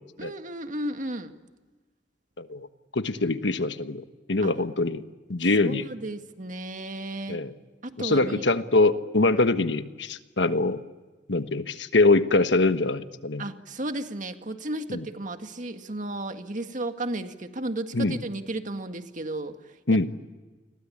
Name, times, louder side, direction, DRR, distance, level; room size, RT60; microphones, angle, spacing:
voice 1, 0.2-1.3 4.4-4.5 5.6-7.4 7.8-8.4 13.4-19.5 19.9-20.1, right 1 dB, 45° right, 7 dB, 1.9 m, -34 dB
voice 2, 2.4-2.7 2.9-4.0 4.3-5.0 5.3-5.8 7.3-7.5 8.0-10.8 11.3-13.4 14.9-15.0 17.9-18.2 19.9-20.1, left 2 dB, 80° left, 10 dB, 1.3 m, -23 dB
30.0 x 22.5 x 8.6 m, 1.3 s
head